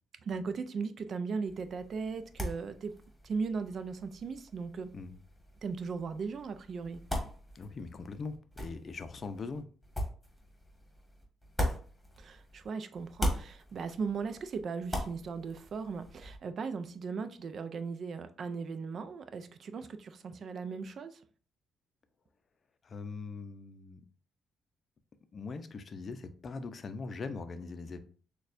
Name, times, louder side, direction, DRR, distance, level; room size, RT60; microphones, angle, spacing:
voice 1, 0.2-3.0 3.2-4.9 5.6-7.0 12.2-21.2, right 5 dB, 55° right, 0.4 m, -37 dB
sound 1, 1.5-12.7 12.9-16.4, equal, 5° left, 1.5 m, -40 dB
voice 2, 7.5-9.7 22.8-24.0 25.3-28.0, left 4 dB, 45° left, 0.5 m, -41 dB
6.4 x 2.3 x 2.5 m
cardioid pair, 90°, 0 cm